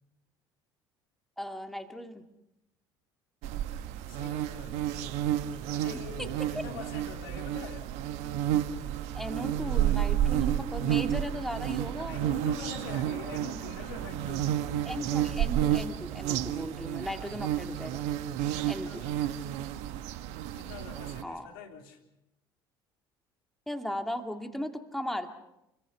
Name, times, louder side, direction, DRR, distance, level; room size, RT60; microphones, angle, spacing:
voice 1, 1.4-2.2 6.2-6.6 9.1-12.2 14.9-18.0 18.7-19.1 21.2-21.5 23.7-25.3, equal, ahead, 5 dB, 2.4 m, -37 dB
sound 1, 3.4-21.2, right 11 dB, 65° right, 1.3 m, -31 dB
voice 2, 4.1-4.8 5.7-7.9 12.1-14.6 17.0-17.6 18.8-19.3 20.5-22.0, left 6 dB, 75° left, 3 dB, 3.4 m, -44 dB
29.5 x 22.0 x 5.8 m, 0.89 s
hypercardioid pair, 65°, 12 cm